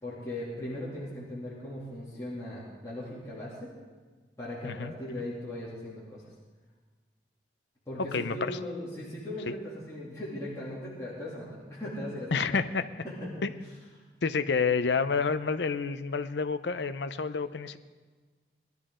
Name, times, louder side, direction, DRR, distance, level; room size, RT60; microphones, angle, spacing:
voice 1, 0.0-3.7 4.4-6.2 7.9-12.5 13.0-13.5, left 1 dB, 20° left, -9 dB, 2.8 m, -38 dB
voice 2, 8.1-8.5 9.5-9.6 12.3-12.9 13.4-13.5 14.2-17.8, left 5 dB, 80° left, 12 dB, 0.6 m, -29 dB
19.5 x 12.0 x 3.8 m, 1.4 s
head